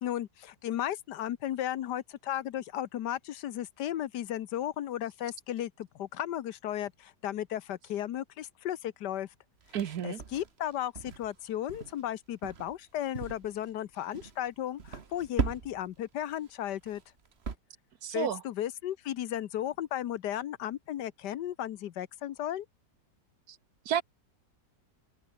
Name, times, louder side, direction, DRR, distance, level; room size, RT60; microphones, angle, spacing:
voice 1, 0.0-9.3 10.0-17.0 18.1-22.7, left 11 dB, 75° left, 1.4 m, -35 dB
sound 1, 9.6-11.4 11.7-12.0 12.4-12.8 13.1-13.7 14.0-14.4 14.8-16.0 16.3-16.5 16.8-17.6, right 5 dB, 40° right, 1.6 m, -37 dB
voice 2, 9.7-10.2 18.0-18.4 23.5-23.6 23.8-24.0, right 9 dB, 65° right, 1.4 m, -31 dB
omnidirectional pair, 1.9 m